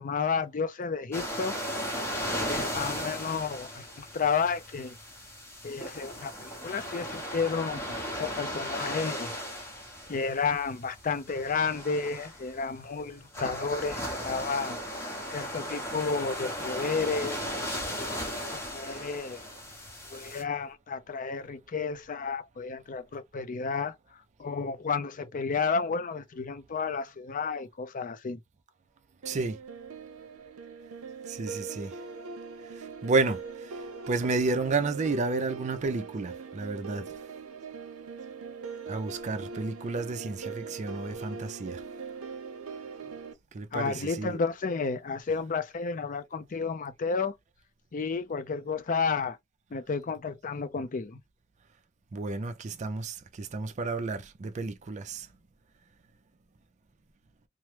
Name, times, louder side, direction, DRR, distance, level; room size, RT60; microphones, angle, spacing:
voice 1, 0.0-1.6 2.4-5.0 5.6-9.3 10.1-14.8 15.3-17.4 18.0-19.4 20.1-23.9 24.4-28.4 43.7-47.4 47.9-49.4 49.7-51.2, left 5 dB, 40° left, 0.5 m, -32 dB
sound 1, 1.1-20.4, equal, 10° left, 0.9 m, -36 dB
voice 2, 29.2-29.6 31.3-31.9 33.0-33.7 34.1-37.1 38.9-41.8 43.5-44.4 52.1-55.3, right 3 dB, 35° right, 0.4 m, -31 dB
sound 2, 29.2-43.3, right 5 dB, 80° right, 0.6 m, -41 dB
3.0 x 2.0 x 3.1 m
head